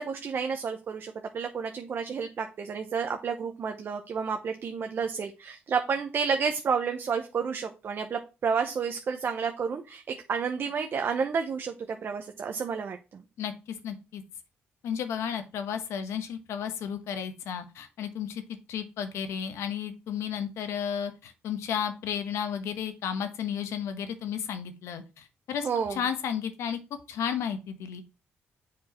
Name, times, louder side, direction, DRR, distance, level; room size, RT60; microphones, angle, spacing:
voice 1, 0.0-13.2 25.6-26.0, right 6 dB, 50° right, 5 dB, 0.8 m, -30 dB
voice 2, 13.8-14.2 14.8-18.4 18.7-28.0, left 8 dB, 85° left, 9 dB, 1.1 m, -33 dB
7.4 x 4.5 x 4.3 m, 0.30 s
cardioid pair, 95°, 5 cm